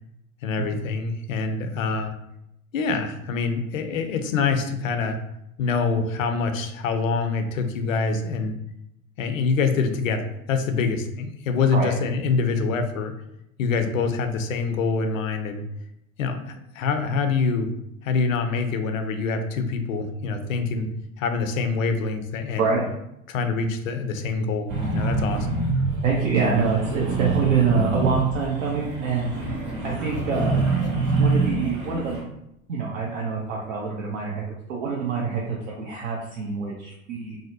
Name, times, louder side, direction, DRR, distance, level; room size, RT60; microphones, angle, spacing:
voice 1, 0.4-2.1 2.7-5.2 5.6-8.5 9.2-13.1 13.6-15.6 16.2-17.7 18.0-20.9 21.2-22.7 23.3-25.5, left 4 dB, 70° left, 6 dB, 0.5 m, -25 dB
sound 1, 24.7-32.2, right 3 dB, 30° right, 0.9 m, -26 dB
voice 2, 26.0-29.3 29.8-30.7 31.2-32.2 32.7-34.4 34.7-37.4, right 5 dB, 65° right, -3 dB, 0.6 m, -25 dB
2.6 x 2.1 x 2.6 m, 0.82 s
figure-of-eight pair, 85°, 41 cm